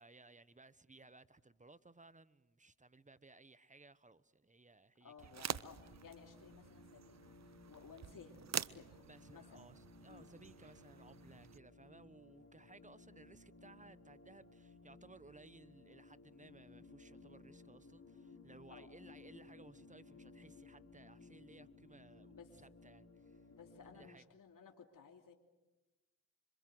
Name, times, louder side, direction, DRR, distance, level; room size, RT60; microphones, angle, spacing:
voice 1, 0.0-5.3 9.0-23.5 23.9-24.2, right 3 dB, 20° right, 1.2 m, -61 dB
voice 2, 5.0-9.0 9.3-9.4 10.0-10.3 18.7-18.9 22.3-22.5 23.5-25.3, left 6 dB, 60° left, 2.8 m, -58 dB
sound 1, 5.2-11.6, right 8 dB, 45° right, 0.8 m, -47 dB
sound 2, 5.5-24.1, left 3 dB, 40° left, 4.2 m, -60 dB
26.0 x 26.0 x 8.0 m
supercardioid pair, 55°, 37 cm